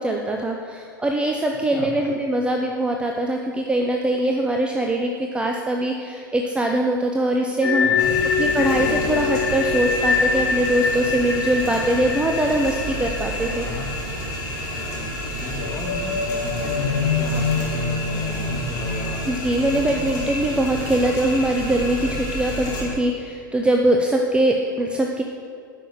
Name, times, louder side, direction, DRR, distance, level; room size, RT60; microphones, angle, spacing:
voice 1, 0.0-8.1 8.4-13.7 19.3-25.2, right 1 dB, 10° right, 2 dB, 0.7 m, -22 dB
sound 1, 7.6-14.5 14.7-14.9 15.4-20.8, left 5 dB, 80° left, 1.5 m, -25 dB
voice 2, 7.8-8.2 13.6-13.9 15.2-19.3, left 3 dB, 20° left, -1 dB, 2.1 m, -33 dB
sound 2, 8.0-22.8, equal, 35° left, 2.8 m, -30 dB
9.8 x 6.3 x 7.5 m, 2.2 s
figure-of-eight pair, 90°, 12 cm